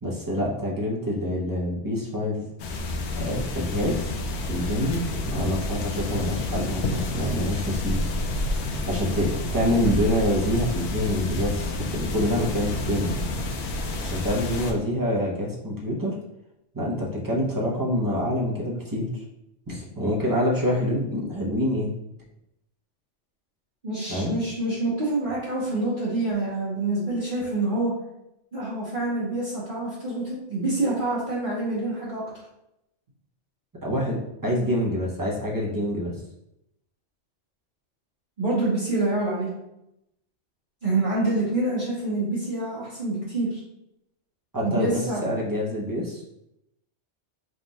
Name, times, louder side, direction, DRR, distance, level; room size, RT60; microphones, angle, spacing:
voice 1, 0.0-2.4 3.2-4.2 4.5-8.0 8.9-13.1 14.0-16.2 16.7-19.2 19.7-21.9 24.1-24.3 33.8-36.1 44.5-46.2, equal, 20° right, -4 dB, 0.7 m, -26 dB
sound 1, 2.6-14.7, left 2 dB, 75° left, 0.9 m, -29 dB
voice 2, 23.8-27.9 28.5-32.2 38.4-39.5 40.8-43.6 44.6-45.2, right 2 dB, 45° right, -8 dB, 1.1 m, -26 dB
3.7 x 2.4 x 4.0 m, 0.84 s
omnidirectional pair, 1.2 m